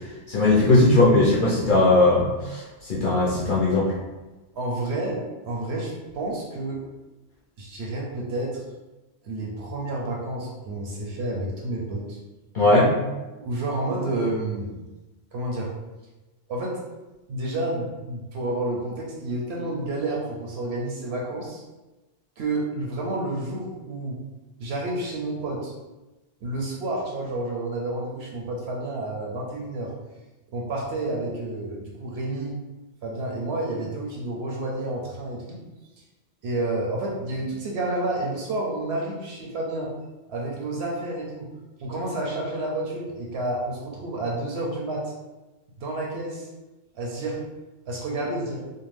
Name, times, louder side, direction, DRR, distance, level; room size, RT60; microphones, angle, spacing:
voice 1, 0.3-3.9 12.5-12.9, left 2 dB, 55° left, -6 dB, 0.6 m, -19 dB
voice 2, 4.6-6.8 7.6-8.6 9.2-12.2 13.4-14.7 15.3-15.7 16.5-16.8 17.3-21.6 22.4-24.2 24.6-25.7 26.4-29.9 30.5-32.6 33.0-35.6 36.4-39.9 40.3-41.5 41.8-45.1 45.8-46.5 46.9-47.4 47.9-48.6, right 2 dB, 65° right, -2 dB, 0.7 m, -30 dB
2.5 x 2.2 x 3.2 m, 1.1 s
omnidirectional pair, 1.3 m